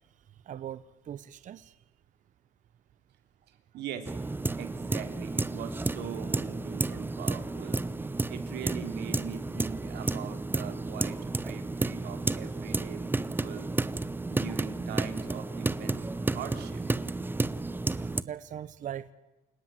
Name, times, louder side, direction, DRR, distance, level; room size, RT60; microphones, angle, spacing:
voice 1, 0.5-1.8 18.2-19.1, right 10 dB, 50° right, 15 dB, 0.9 m, -40 dB
voice 2, 3.5-4.1 4.6-7.8 8.3-13.7 14.3-16.8, right 8 dB, 80° right, 7 dB, 3.5 m, -42 dB
sound 1, 4.1-18.2, right 3 dB, 10° right, 0.7 m, -32 dB
28.5 x 17.5 x 7.6 m, 1.1 s
cardioid pair, 110°, 17 cm